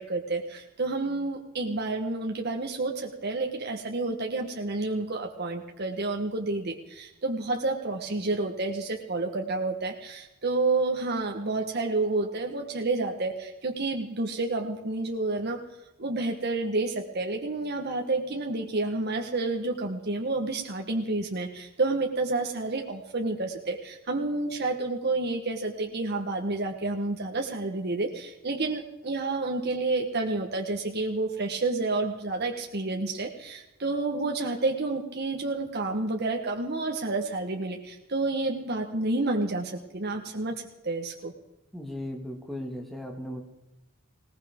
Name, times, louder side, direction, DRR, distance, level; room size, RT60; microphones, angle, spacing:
voice 1, 0.0-15.6 16.0-41.3, right 2 dB, 50° right, 1 dB, 1.1 m, -29 dB
voice 2, 41.7-43.4, left 1 dB, ahead, 1 dB, 1.8 m, -36 dB
20.0 x 18.5 x 3.6 m, 0.99 s
head